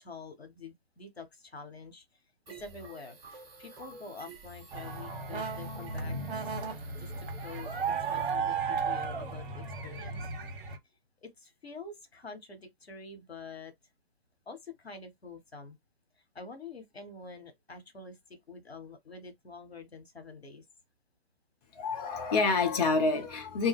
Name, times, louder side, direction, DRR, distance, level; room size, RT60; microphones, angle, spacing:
voice 1, 0.0-2.0 2.5-6.5 7.0-7.7 8.1-10.3 11.2-13.7 14.5-15.8 16.2-18.2 18.5-20.6, left 4 dB, 80° left, 1.0 m, -47 dB
sound 1, 2.5-8.3, right 3 dB, 10° right, 0.6 m, -50 dB
sound 2, 4.7-10.8, right 5 dB, 55° right, 0.9 m, -34 dB
voice 2, 21.8-23.7, left 4 dB, 40° left, 0.5 m, -27 dB
2.3 x 2.1 x 3.4 m
figure-of-eight pair, 130°, 31 cm